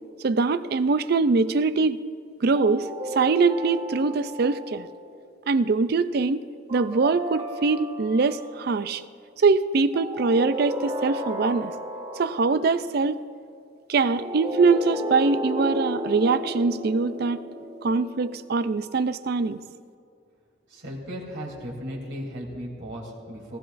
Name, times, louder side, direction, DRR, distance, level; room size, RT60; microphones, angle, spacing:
voice 1, 0.2-2.0 2.4-4.9 5.5-6.4 6.7-9.0 9.4-11.7 12.1-13.2 13.9-17.4 17.8-19.6, right 4 dB, 50° right, 13 dB, 0.4 m, -23 dB
sound 1, 2.5-5.0 6.7-8.5 9.9-12.6 14.0-18.5, equal, 30° right, 3.0 m, -33 dB
voice 2, 20.7-23.6, equal, 65° right, -4 dB, 3.0 m, -36 dB
19.5 x 15.0 x 2.5 m, 2.4 s
head